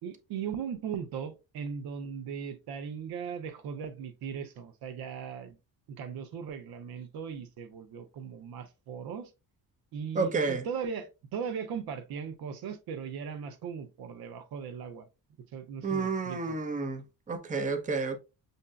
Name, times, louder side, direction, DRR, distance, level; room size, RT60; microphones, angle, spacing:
voice 1, 0.0-5.6 5.9-9.3 9.9-15.1 15.5-16.6, right 7 dB, 80° right, 0.7 m, -38 dB
voice 2, 10.1-10.6 15.8-18.2, right 4 dB, 20° right, 0.6 m, -30 dB
6.5 x 2.7 x 2.3 m
cardioid pair, 105°, 36 cm